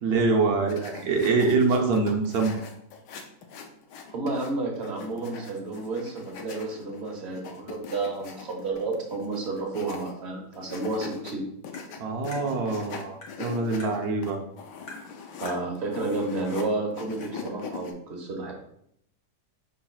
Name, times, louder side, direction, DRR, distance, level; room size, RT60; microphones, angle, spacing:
voice 1, 0.0-2.6 12.0-14.4, right 3 dB, 70° right, 2 dB, 1.1 m, -24 dB
sound 1, 0.7-4.5 4.8-10.2 10.5-11.3 11.6-16.6 16.9-17.9, left 5 dB, 85° left, 1.3 m, -41 dB
voice 2, 4.1-11.4 15.4-18.5, right 3 dB, 45° right, 1 dB, 1.1 m, -31 dB
Tap, 11.7-11.9 12.3-12.5 13.2-13.4 13.8-13.9 14.9-15.1 15.5-15.6 16.6-16.7 17.2-17.3, left 2 dB, 65° left, 1.6 m, -43 dB
5.7 x 4.0 x 2.3 m, 0.72 s
omnidirectional pair, 1.8 m